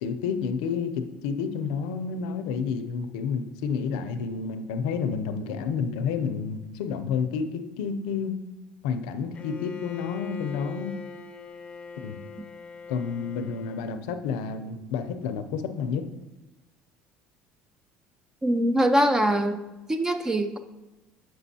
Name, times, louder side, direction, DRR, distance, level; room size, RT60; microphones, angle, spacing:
voice 1, 0.0-8.4 8.8-11.0 12.0-12.2 12.9-16.0, left 6 dB, 90° left, 10 dB, 0.5 m, -30 dB
Bowed string instrument, 9.3-14.1, left 5 dB, 30° left, 0.5 m, -41 dB
voice 2, 18.4-19.6 19.9-20.6, right 1 dB, 15° right, 9 dB, 0.4 m, -23 dB
7.6 x 6.2 x 2.8 m, 1.0 s
supercardioid pair, 115°, 4 cm